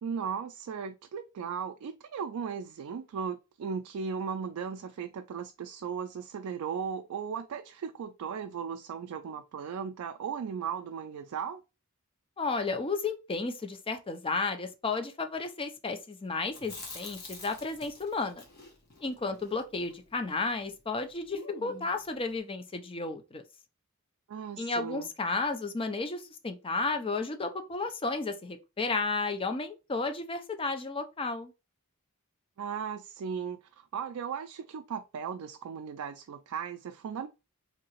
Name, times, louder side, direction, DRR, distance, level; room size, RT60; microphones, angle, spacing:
voice 1, 0.0-11.6 24.3-25.1 32.6-37.3, right 6 dB, 75° right, 0.3 m, -37 dB
voice 2, 12.4-18.4 19.0-23.4 24.6-31.5, left 3 dB, 25° left, 0.5 m, -33 dB
Chewing mastication, 16.5-20.7 20.9-21.0 21.3-22.1, left 3 dB, 45° left, 1.1 m, -47 dB
3.7 x 2.8 x 2.9 m
head